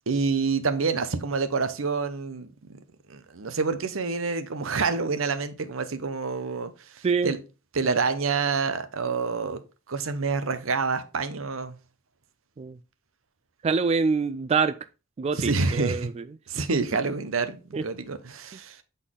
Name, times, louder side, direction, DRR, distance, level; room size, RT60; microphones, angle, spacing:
voice 1, 0.1-2.5 3.1-7.4 7.7-9.6 9.9-11.8 15.4-16.1 16.5-18.8, right 4 dB, 85° right, 0.8 m, -27 dB
voice 2, 13.6-14.8 15.2-16.2 17.7-17.8, right 5 dB, 30° right, 0.3 m, -25 dB
8.0 x 4.1 x 3.7 m
head